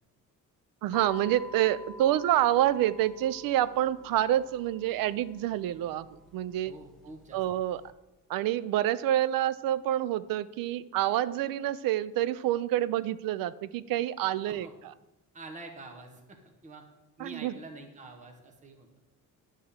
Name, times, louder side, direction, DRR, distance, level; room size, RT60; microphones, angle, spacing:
voice 1, 0.8-6.7 7.3-7.8 8.3-14.7 17.2-17.5, right 13 dB, 80° right, 17 dB, 0.5 m, -27 dB
sound 1, 0.9-7.9, left 2 dB, ahead, 0.6 m, -49 dB
voice 2, 6.6-7.4 14.5-14.7 15.3-16.8 17.2-18.9, right 2 dB, 20° right, 3 dB, 0.9 m, -46 dB
9.7 x 3.6 x 7.0 m, 1.0 s
cardioid pair, 150°, 34 cm